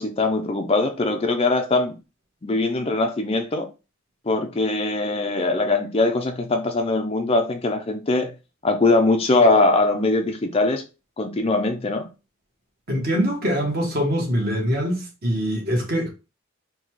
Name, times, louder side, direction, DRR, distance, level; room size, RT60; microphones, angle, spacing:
voice 1, 0.0-1.9 2.4-3.7 4.3-8.3 8.6-10.8 11.2-12.1, left 2 dB, 25° left, 0.4 m, -21 dB
voice 2, 12.9-16.1, equal, 45° right, 1.3 m, -23 dB
4.0 x 2.2 x 4.5 m
head